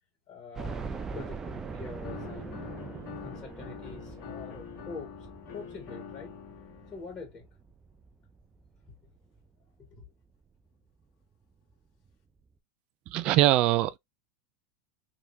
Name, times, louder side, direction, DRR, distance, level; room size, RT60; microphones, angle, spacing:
voice 1, 0.3-0.8 1.1-2.9 3.2-6.4 6.9-7.5 9.8-10.1, left 4 dB, 35° left, 1.9 m, -45 dB
sound 1, 0.6-9.5 9.9-10.0 10.4-10.5 11.7-11.8 12.1-12.2, right 4 dB, 20° right, 0.7 m, -42 dB
sound 2, 2.0-7.1, left 8 dB, 50° left, 1.5 m, -44 dB
voice 2, 13.1-14.0, right 15 dB, 50° right, 0.4 m, -22 dB
3.5 x 3.0 x 2.8 m
hypercardioid pair, 95°, 2 cm